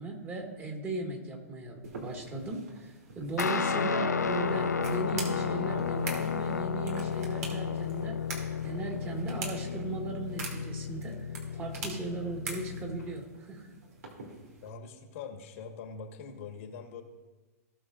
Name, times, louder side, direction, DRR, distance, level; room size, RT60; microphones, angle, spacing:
voice 1, 0.0-8.2 8.6-11.2 11.5-13.7, right 3 dB, 25° right, 0 dB, 2.1 m, -37 dB
sound 1, 1.8-14.7, right 3 dB, 70° right, 2.6 m, -45 dB
Guitar, 3.4-13.1, left 6 dB, 85° left, 0.6 m, -33 dB
voice 2, 14.6-17.0, left 5 dB, 55° left, 3 dB, 1.5 m, -43 dB
17.5 x 6.4 x 2.5 m, 1.2 s
hypercardioid pair, 110°, 9 cm